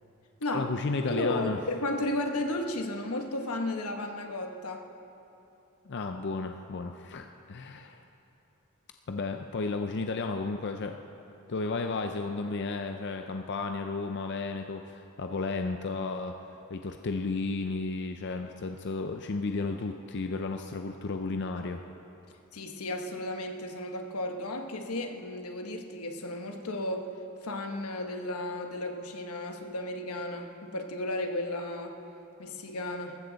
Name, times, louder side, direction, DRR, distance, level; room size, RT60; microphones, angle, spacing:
voice 1, 0.5-1.6 5.9-8.0 9.1-11.0 11.5-16.4 16.7-21.8, left 3 dB, 50° left, 5 dB, 0.5 m, -33 dB
voice 2, 1.1-4.8 22.5-27.1 27.4-32.0 32.4-33.2, left 1 dB, 85° left, 4 dB, 1.2 m, -34 dB
19.5 x 14.5 x 4.0 m, 2.8 s
head